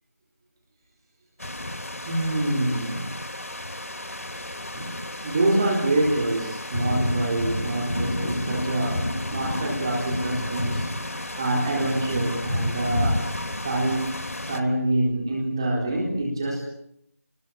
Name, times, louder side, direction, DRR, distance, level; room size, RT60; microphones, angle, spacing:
sound 1, 1.4-14.6, left 1 dB, 70° left, 2.6 m, -30 dB
voice 1, 2.1-3.1 4.7-5.0 5.2-13.3 13.6-14.1 14.5-16.7, right 1 dB, 15° right, -2 dB, 4.0 m, -26 dB
28.5 x 21.0 x 9.0 m, 0.76 s
figure-of-eight pair, 175°, 8 cm